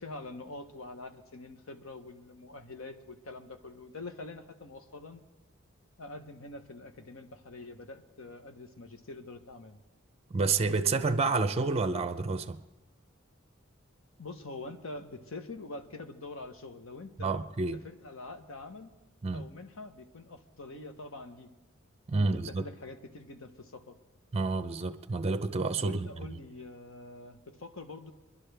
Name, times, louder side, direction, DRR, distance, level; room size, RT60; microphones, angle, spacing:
voice 1, 0.0-5.2 6.0-9.8 14.2-17.3 17.8-18.9 19.3-21.5 22.1-24.0 25.8-28.1, left 2 dB, 85° left, 1.1 m, -45 dB
voice 2, 10.3-12.6 17.2-17.8 19.2-19.5 22.1-22.6 24.3-26.4, right 3 dB, 30° right, 0.6 m, -29 dB
23.5 x 11.5 x 3.4 m
head